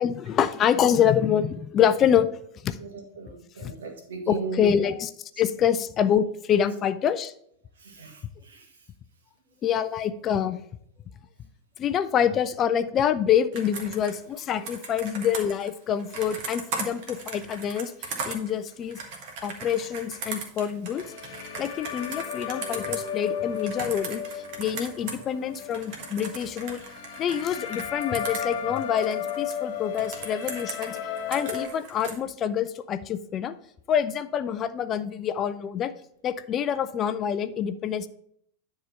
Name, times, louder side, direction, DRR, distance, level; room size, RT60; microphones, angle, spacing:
voice 1, 0.0-2.3 2.6-2.8 3.6-3.7 4.3-5.1 5.4-7.3 9.6-10.6 11.8-17.9 18.2-19.0 19.4-21.0 21.6-24.2 24.6-26.8 27.2-31.0 31.3-33.6 33.9-35.9 36.2-38.1, left 9 dB, 30° left, 12 dB, 0.5 m, -26 dB
voice 2, 2.8-4.8 7.8-8.7, right 4 dB, 65° right, 3 dB, 1.7 m, -37 dB
Computer keyboard, 13.5-25.2 25.5-29.5 29.9-32.2, right 4 dB, 45° right, 1.5 m, -38 dB
sound 1, 20.9-31.7, left 8 dB, 45° left, 1.0 m, -35 dB
10.0 x 3.7 x 5.6 m, 0.66 s
figure-of-eight pair, 90°, 0 cm